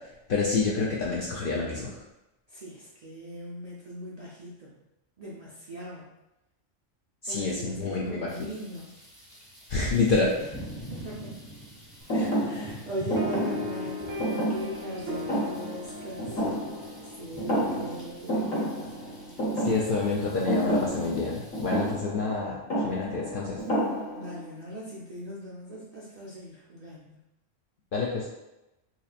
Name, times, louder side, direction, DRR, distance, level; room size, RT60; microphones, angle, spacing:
voice 1, 0.3-2.0 7.2-8.3 9.7-10.3 19.6-22.6 22.8-23.6 27.9-28.3, left 3 dB, 60° left, -4 dB, 0.6 m, -27 dB
voice 2, 2.5-4.8 5.2-6.1 7.3-9.0 10.7-11.5 12.1-18.8 24.2-27.2, right 1 dB, 50° right, -6 dB, 0.5 m, -40 dB
sound 1, 8.3-21.9, equal, 25° left, 1.3 m, -47 dB
Thump thud, 12.1-17.1 17.4-18.0 18.3-24.4, right 1 dB, 90° left, 1.4 m, -30 dB
sound 2, 13.2-20.0, left 1 dB, 80° right, 0.9 m, -38 dB
4.0 x 2.9 x 2.4 m, 0.94 s
omnidirectional pair, 1.3 m